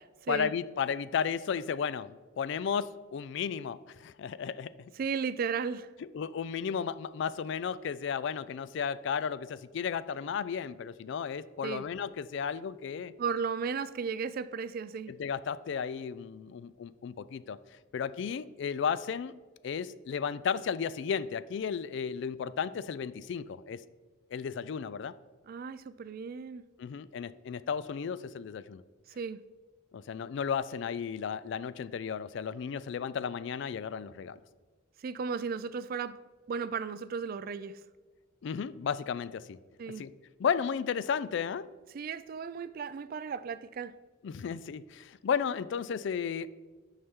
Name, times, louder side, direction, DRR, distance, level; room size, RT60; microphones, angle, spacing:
voice 1, 0.3-4.7 6.0-13.1 15.1-17.6 17.9-19.3 19.6-23.8 24.3-25.1 26.8-28.8 29.9-34.4 38.4-39.6 40.0-40.1 40.4-41.6 44.2-46.5, left 7 dB, 60° left, 16 dB, 0.3 m, -34 dB
voice 2, 5.0-5.9 11.6-11.8 13.2-15.1 25.5-26.6 29.2-29.4 35.0-36.2 36.5-37.8 39.8-40.0 41.9-43.9, right 5 dB, 45° right, 14 dB, 0.3 m, -35 dB
9.5 x 5.6 x 3.6 m, 1.3 s
head